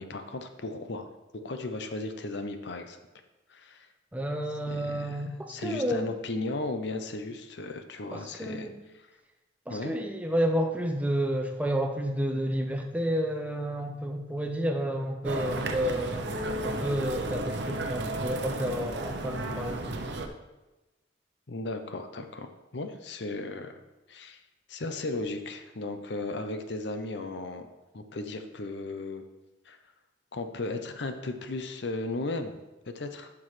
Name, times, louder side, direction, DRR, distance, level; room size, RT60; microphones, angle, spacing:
voice 1, 0.0-3.0 3.5-3.9 4.7-8.7 9.0-9.1 9.7-9.9 21.5-22.5 22.7-23.8 24.1-24.4 24.7-27.7 27.9-29.2 29.7-29.8 30.3-33.3, left 2 dB, 65° left, 7 dB, 0.7 m, -36 dB
voice 2, 4.1-6.1 8.1-8.8 9.7-16.3 16.6-19.9, equal, 10° right, 4 dB, 0.6 m, -30 dB
sound 1, 15.2-20.3, right 2 dB, 65° right, 0.7 m, -33 dB
11.5 x 6.1 x 3.2 m, 1.1 s
head